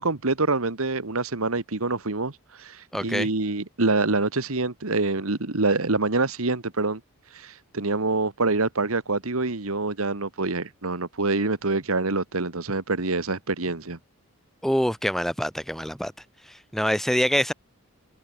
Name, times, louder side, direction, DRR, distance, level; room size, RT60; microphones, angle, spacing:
voice 1, 0.0-2.3 2.6-7.0 7.3-14.0, right 3 dB, 75° right, 1.6 m, -26 dB
voice 2, 2.9-3.3 14.6-16.1 16.5-17.5, equal, ahead, 1.0 m, -25 dB
head